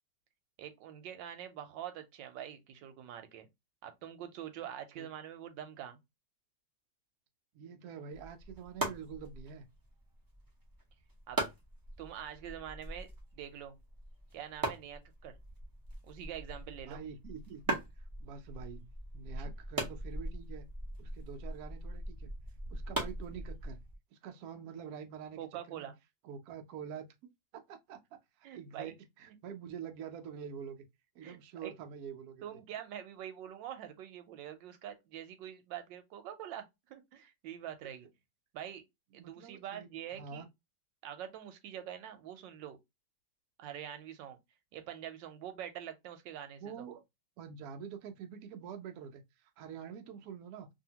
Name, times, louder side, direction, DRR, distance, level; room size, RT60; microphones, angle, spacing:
voice 1, 0.6-3.5 3.8-6.0 11.3-11.4 12.0-13.7 14.3-15.4 16.0-17.0 19.4-19.5 25.4-25.9 28.4-28.9 31.2-31.7 32.4-38.1 38.5-38.8 39.1-40.4 41.0-42.8 43.6-44.4 44.7-46.9, right 10 dB, 90° right, 1.3 m, -45 dB
voice 2, 7.5-9.7 16.8-18.9 19.1-20.7 21.0-22.3 22.7-23.8 24.1-25.9 26.2-27.1 27.5-30.8 31.1-32.6 39.2-40.5 46.6-47.0 47.4-50.7, right 7 dB, 70° right, 0.9 m, -46 dB
sound 1, 8.1-23.9, right 1 dB, 25° right, 0.4 m, -41 dB
2.7 x 2.7 x 2.7 m
omnidirectional pair, 1.9 m